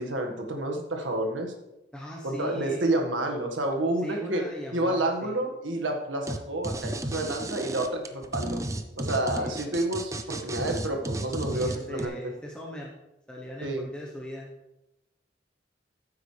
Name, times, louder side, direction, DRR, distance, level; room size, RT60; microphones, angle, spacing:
voice 1, 0.0-1.5 2.2-4.4 4.7-8.6 9.0-12.1 13.6-13.9, right 1 dB, 90° right, 3 dB, 1.7 m, -29 dB
voice 2, 1.9-2.9 4.0-5.4 9.4-9.6 11.5-12.9 13.3-14.5, equal, 5° left, -3 dB, 1.0 m, -39 dB
sound 1, 6.3-6.4 6.6-12.1, right 1 dB, 15° right, 0.6 m, -33 dB
14.0 x 8.1 x 3.3 m, 0.94 s
head